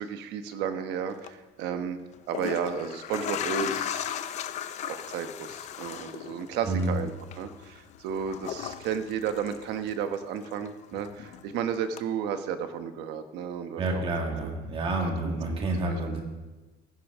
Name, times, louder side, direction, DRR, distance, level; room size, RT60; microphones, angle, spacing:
voice 1, 0.0-2.0 2.3-4.1 4.8-14.0 14.4-14.5 15.2-15.6, right 8 dB, 65° right, 9 dB, 1.1 m, -33 dB
sound 1, 1.1-1.3 2.1-10.2 10.5-11.5 12.0-12.1, left 10 dB, 40° left, 0.5 m, -37 dB
voice 2, 13.8-16.2, right 2 dB, 30° right, 1 dB, 1.8 m, -29 dB
16.5 x 10.0 x 3.7 m, 1.2 s
cardioid pair, 170°, 19 cm